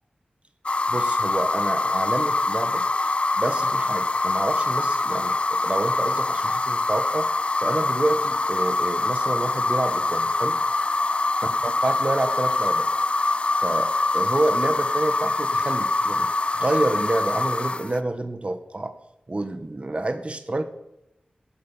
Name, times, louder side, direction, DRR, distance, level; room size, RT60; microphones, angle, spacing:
sound 1, 0.7-18.0, left 3 dB, 40° left, 0.4 m, -24 dB
voice 1, 0.9-2.8 3.4-7.3 7.6-10.6 11.6-12.9 13.6-16.3 16.6-19.0 19.3-20.6, right 2 dB, 45° right, 9 dB, 1.0 m, -28 dB
12.5 x 9.0 x 5.4 m, 0.86 s
wide cardioid pair, 70°, 3 cm